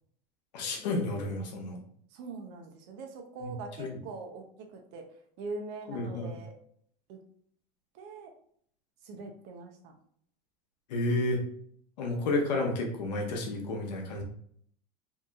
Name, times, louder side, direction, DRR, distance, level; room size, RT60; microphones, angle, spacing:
voice 1, 0.5-1.8 3.4-3.9 5.9-6.4 10.9-11.4 12.0-14.2, left 2 dB, 90° left, 2 dB, 0.8 m, -31 dB
voice 2, 2.1-4.4 4.7-5.0 5.4-6.5 7.1-7.2 7.9-8.3 9.0-9.9, right 3 dB, 60° right, 3 dB, 0.7 m, -42 dB
2.8 x 2.6 x 2.3 m, 0.63 s
supercardioid pair, 105°, 21 cm